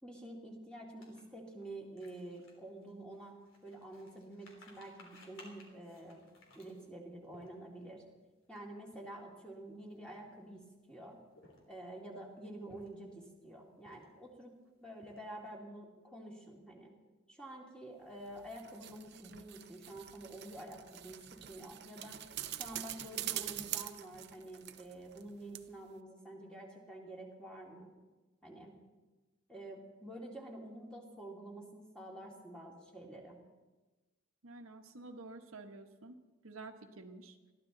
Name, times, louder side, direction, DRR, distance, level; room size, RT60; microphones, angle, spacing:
voice 1, 0.0-6.2 6.5-8.0 8.5-11.2 11.7-14.5 14.8-16.9 17.3-21.2 21.5-22.2 22.5-27.9 28.4-28.8 29.5-33.4, right 1 dB, 5° left, -1 dB, 2.5 m, -48 dB
sound 1, 1.0-7.9 8.4-8.6 8.9-9.1 9.7-10.6 11.2-11.9 12.5-13.2 13.7-14.3 14.7-15.5, left 2 dB, 65° left, 3.3 m, -61 dB
sound 2, 18.3-25.3 25.5-25.6, right 12 dB, 50° right, 0.7 m, -44 dB
voice 2, 34.4-36.1 36.4-37.4, right 3 dB, 85° right, 4 dB, 1.4 m, -50 dB
21.5 x 14.5 x 4.0 m, 1.2 s
head